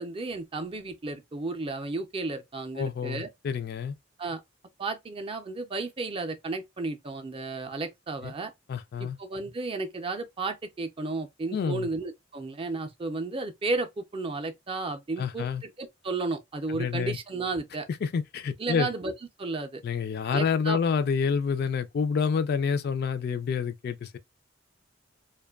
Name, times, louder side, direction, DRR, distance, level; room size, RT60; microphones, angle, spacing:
voice 1, 0.0-3.3 4.2-4.4 4.8-8.5 9.0-17.9 18.6-19.1 19.4-19.8 20.3-20.8, right 3 dB, 30° right, 0.4 m, -33 dB
voice 2, 2.8-4.0 8.2-8.3 8.7-9.2 11.5-11.9 15.2-15.6 16.7-17.2 18.0-18.9 19.8-24.2, left 6 dB, 55° left, 0.3 m, -28 dB
2.5 x 2.2 x 2.3 m
head